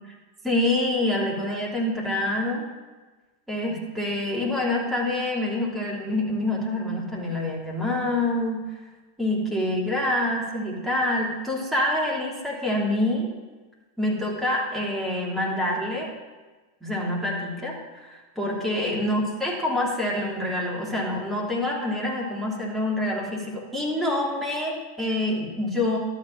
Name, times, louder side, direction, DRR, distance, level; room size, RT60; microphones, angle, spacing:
voice 1, 0.4-2.6 3.5-8.6 9.2-13.3 14.0-16.1 16.8-26.0, left 1 dB, 5° right, -3 dB, 3.0 m, -26 dB
12.0 x 5.2 x 7.3 m, 1.3 s
figure-of-eight pair, 90°, 0 cm